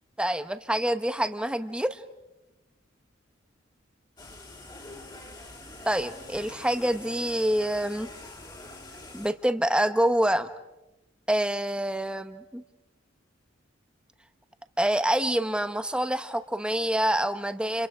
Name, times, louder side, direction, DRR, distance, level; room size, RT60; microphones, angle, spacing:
voice 1, 0.2-2.0 5.8-8.1 9.1-10.5 11.3-12.6 14.8-17.9, right 1 dB, 5° right, 9 dB, 1.0 m, -26 dB
sound 1, 4.2-9.3, left 2 dB, 25° left, 2.8 m, -45 dB
30.0 x 29.5 x 4.9 m, 0.96 s
head